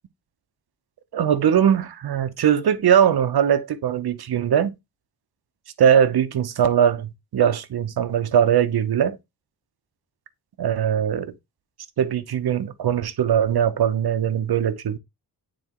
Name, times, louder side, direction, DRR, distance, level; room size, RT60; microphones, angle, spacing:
voice 1, 1.1-4.7 5.8-9.2 10.6-11.3 12.0-15.0, right 8 dB, 80° right, 0.8 m, -20 dB
8.7 x 4.1 x 2.9 m
wide cardioid pair, 175°, 37 cm